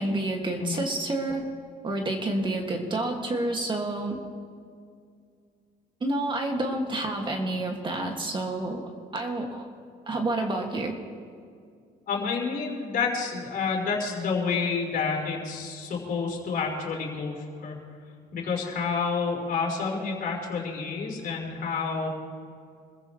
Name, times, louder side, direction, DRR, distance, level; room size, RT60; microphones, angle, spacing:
voice 1, 0.0-1.5 1.8-4.2 6.0-8.8 9.1-9.7 10.1-11.0, right 2 dB, 30° right, 2 dB, 2.1 m, -29 dB
voice 2, 12.1-17.8 18.3-22.1, left 5 dB, 55° left, -1 dB, 4.3 m, -29 dB
26.0 x 15.0 x 3.2 m, 2.2 s
cardioid pair, 110°, 17 cm